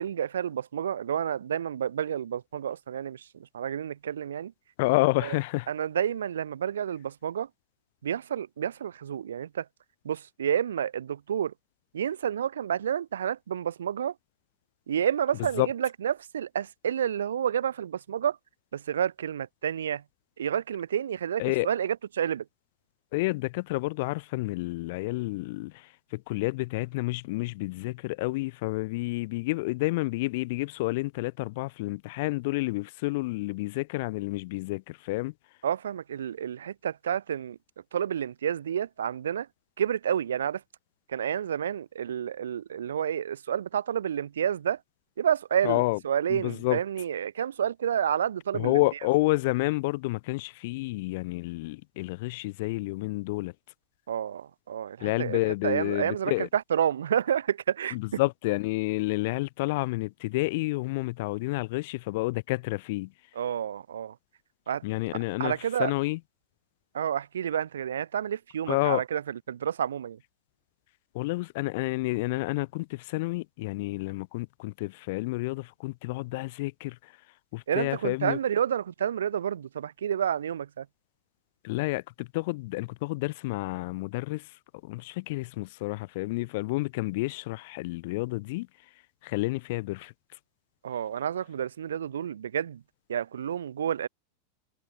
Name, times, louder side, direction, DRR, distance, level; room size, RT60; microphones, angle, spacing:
voice 1, 0.0-4.5 5.2-5.4 5.7-7.5 8.0-9.6 10.0-11.5 11.9-14.1 14.9-18.4 18.7-20.0 20.4-22.4 35.6-37.6 37.9-39.5 39.8-40.6 41.1-44.8 45.2-48.8 54.1-58.0 63.3-64.1 64.7-64.8 65.4-65.9 66.9-70.2 77.7-80.8 90.8-92.8 93.1-94.1, right 9 dB, 65° right, 0.8 m, -30 dB
voice 2, 4.8-5.7 15.6-15.7 21.4-21.7 23.1-25.7 26.1-35.3 45.6-46.0 46.3-46.8 48.5-53.5 55.0-56.5 57.9-63.1 64.8-65.5 65.8-66.2 68.7-69.0 71.1-77.0 77.5-78.4 81.6-84.4 84.8-88.7 89.2-90.1, left 22 dB, 50° left, 0.7 m, -29 dB
figure-of-eight pair, 90°, 0 cm